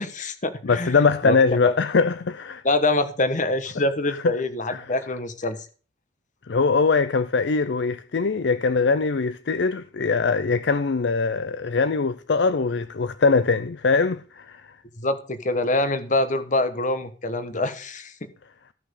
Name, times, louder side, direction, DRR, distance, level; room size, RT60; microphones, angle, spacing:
voice 1, 0.0-1.0 1.2-1.3 1.6-1.7 2.6-5.6 15.0-18.1, left 2 dB, 40° left, 1.3 m, -25 dB
voice 2, 0.6-2.6 4.1-4.3 4.7-4.9 6.5-14.8, left 4 dB, 65° left, 0.5 m, -22 dB
14.0 x 6.0 x 6.5 m
head